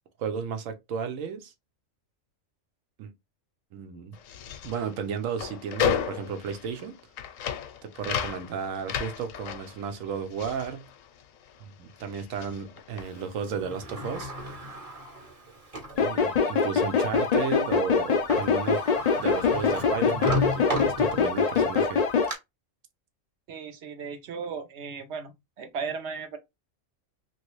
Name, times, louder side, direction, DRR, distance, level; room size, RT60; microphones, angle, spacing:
voice 1, 0.2-1.5 3.0-3.1 3.7-4.2 4.6-6.9 7.8-10.9 11.8-14.3 15.9-18.9 19.2-22.0, right 6 dB, 90° right, 1.0 m, -33 dB
sound 1, 4.1-11.6 11.9-13.4, left 8 dB, 85° left, 1.0 m, -34 dB
Sliding door, 13.4-16.0 16.6-16.7 18.0-18.1 18.3-21.5 21.9-22.3, left 1 dB, 30° right, 0.9 m, -34 dB
sound 2, 16.0-22.3, left 5 dB, 70° left, 0.3 m, -24 dB
voice 2, 23.5-26.4, right 5 dB, 65° right, 0.9 m, -36 dB
3.0 x 2.6 x 3.0 m
omnidirectional pair, 1.3 m